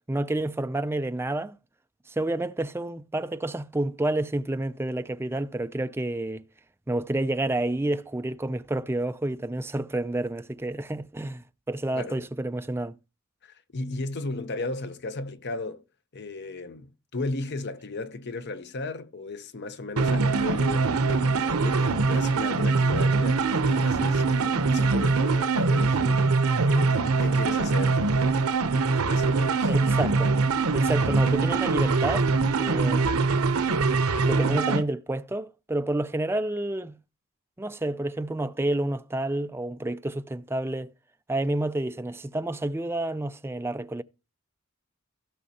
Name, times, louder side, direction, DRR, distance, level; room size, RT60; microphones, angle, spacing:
voice 1, 0.1-1.6 2.1-6.4 6.9-13.0 29.7-30.3 30.7-32.3 32.6-33.2 34.2-37.0 37.6-40.9 41.3-44.0, right 1 dB, 10° right, 0.4 m, -29 dB
voice 2, 11.9-12.3 13.4-15.8 16.1-28.0 28.9-29.7, left 3 dB, 50° left, 0.8 m, -35 dB
sound 1, 20.0-34.8, right 4 dB, 90° right, 0.8 m, -23 dB
16.0 x 6.2 x 2.9 m
head